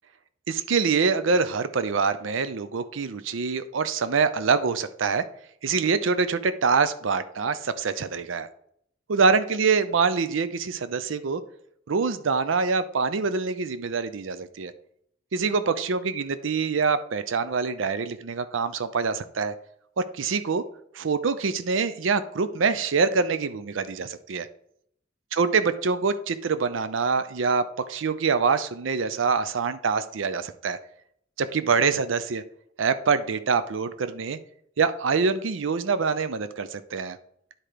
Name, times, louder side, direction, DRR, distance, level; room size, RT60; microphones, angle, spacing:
voice 1, 0.5-5.2 5.6-8.5 9.1-11.4 11.9-14.7 15.3-19.5 20.0-20.6 20.9-24.5 25.3-30.8 31.4-32.4 32.8-34.4 34.8-37.2, right 5 dB, 80° right, 13 dB, 0.5 m, -25 dB
9.8 x 4.4 x 5.0 m, 0.68 s
head